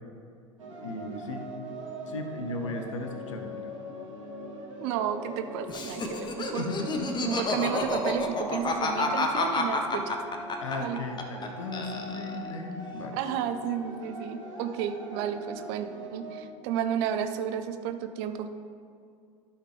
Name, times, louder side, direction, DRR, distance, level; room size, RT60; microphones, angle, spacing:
sound 1, 0.6-16.4, equal, 80° right, 1.7 m, -41 dB
voice 1, 0.8-1.5 2.1-3.6 6.6-6.9 10.6-13.2, left 2 dB, 75° left, 4 dB, 0.8 m, -36 dB
voice 2, 4.8-6.6 7.2-10.1 10.8-11.0 13.1-18.6, right 9 dB, 55° right, 8 dB, 0.7 m, -32 dB
Laughter, 5.7-11.5 11.7-12.5, left 3 dB, 30° left, 0.9 m, -30 dB
12.0 x 5.7 x 3.4 m, 2.4 s
figure-of-eight pair, 75°, 16 cm